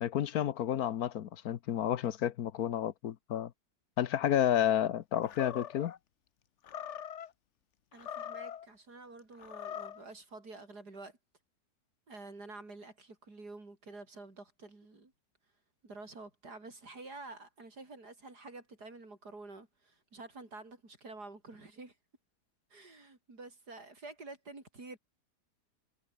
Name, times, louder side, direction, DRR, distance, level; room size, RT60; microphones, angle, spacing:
voice 1, 0.0-3.5 4.0-5.9, left 10 dB, 70° left, 1.3 m, -31 dB
Animal, 5.2-6.0 6.6-7.3 7.9-8.7 9.4-10.0, left 9 dB, 55° left, 1.1 m, -42 dB
voice 2, 7.9-11.2 12.1-15.1 15.8-22.0 22.7-25.0, right 3 dB, 80° right, 5.5 m, -49 dB
omnidirectional pair, 1.7 m